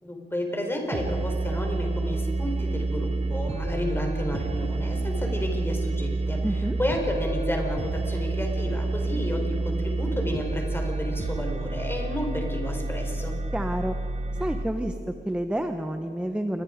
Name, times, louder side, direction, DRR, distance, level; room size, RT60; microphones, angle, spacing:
voice 1, 0.0-13.4, left 1 dB, 10° left, 2 dB, 4.1 m, -31 dB
sound 1, 0.9-14.6, right 3 dB, 35° right, 1.1 m, -29 dB
voice 2, 6.4-6.8 13.5-13.9 14.3-16.6, right 1 dB, 5° right, 7 dB, 0.9 m, -29 dB
28.5 x 22.0 x 5.1 m, 2.9 s
wide cardioid pair, 140°, 19 cm